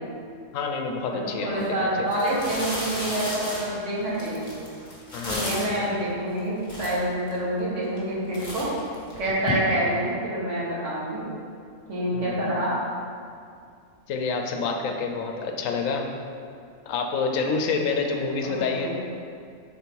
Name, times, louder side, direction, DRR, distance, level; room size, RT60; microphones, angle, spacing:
voice 1, 0.5-2.1 5.1-5.8 12.1-12.5 14.1-16.1 16.9-18.9, left 4 dB, 90° left, 3 dB, 1.0 m, -28 dB
voice 2, 1.1-4.5 5.3-8.7 9.2-11.3 11.9-12.7 18.1-18.2 18.4-18.9, right 1 dB, 65° right, -8 dB, 1.8 m, -27 dB
sound 1, 1.5-1.6 2.1-5.8 6.4-6.5 6.6-7.4 7.8-8.1 8.3-9.5, left 1 dB, 30° left, 1.5 m, -34 dB
4.5 x 4.0 x 5.2 m, 2.3 s
omnidirectional pair, 1.3 m